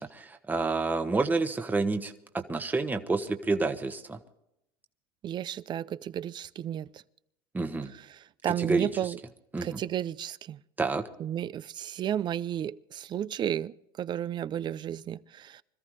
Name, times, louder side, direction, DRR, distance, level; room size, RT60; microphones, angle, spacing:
voice 1, 0.0-4.2 7.5-7.9 8.6-8.9 9.5-9.8 10.8-11.0, right 3 dB, 15° right, 1.2 m, -29 dB
voice 2, 5.2-7.0 7.9-9.2 9.6-10.6 11.2-15.6, right 10 dB, 35° right, 0.5 m, -33 dB
25.5 x 14.0 x 3.2 m
supercardioid pair, 105°, 12 cm